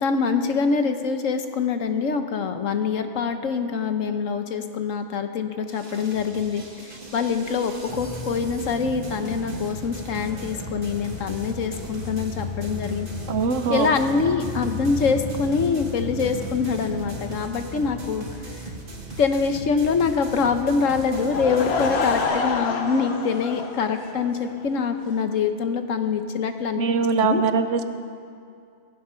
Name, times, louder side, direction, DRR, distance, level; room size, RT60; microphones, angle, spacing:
voice 1, 0.0-13.1 13.7-18.2 19.2-26.8 27.3-27.4, left 5 dB, 70° left, 8 dB, 1.3 m, -24 dB
sound 1, 5.7-22.2, right 2 dB, 40° right, 1.9 m, -38 dB
sound 2, 7.9-18.6, left 5 dB, 30° left, 0.6 m, -36 dB
voice 2, 13.3-13.9 26.8-27.8, right 5 dB, 65° right, 9 dB, 1.1 m, -22 dB
Laughter / Crowd, 21.1-24.6, left 4 dB, 55° left, 1.2 m, -28 dB
15.5 x 15.5 x 5.7 m, 2.4 s
omnidirectional pair, 1.4 m